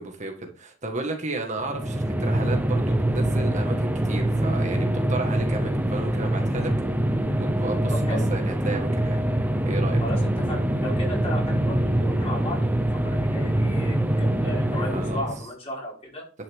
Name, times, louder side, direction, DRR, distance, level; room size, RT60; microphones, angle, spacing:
voice 1, 0.0-6.7 7.4-9.2 9.6-10.0 14.9-15.2, right 2 dB, 35° right, 3 dB, 1.7 m, -33 dB
sound 1, 1.6-15.5, right 1 dB, 10° right, 0.8 m, -24 dB
voice 2, 7.9-8.2 10.0-16.3, left 1 dB, 30° left, -4 dB, 5.8 m, -35 dB
11.5 x 9.5 x 3.7 m, 0.38 s
head